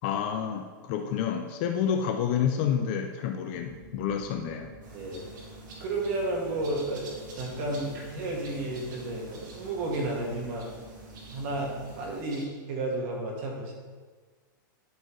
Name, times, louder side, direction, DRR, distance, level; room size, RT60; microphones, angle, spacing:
voice 1, 0.0-4.7, left 8 dB, 30° left, 5 dB, 0.4 m, -29 dB
sound 1, 3.5-12.2, right 2 dB, 20° right, 0.7 m, -48 dB
sound 2, 4.8-12.4, right 2 dB, 60° right, 2.1 m, -49 dB
voice 2, 4.9-5.2 5.8-7.1 7.3-10.7 11.3-13.7, right 2 dB, 40° right, 0 dB, 1.6 m, -32 dB
12.0 x 4.3 x 3.2 m, 1.4 s
supercardioid pair, 170°, 11 cm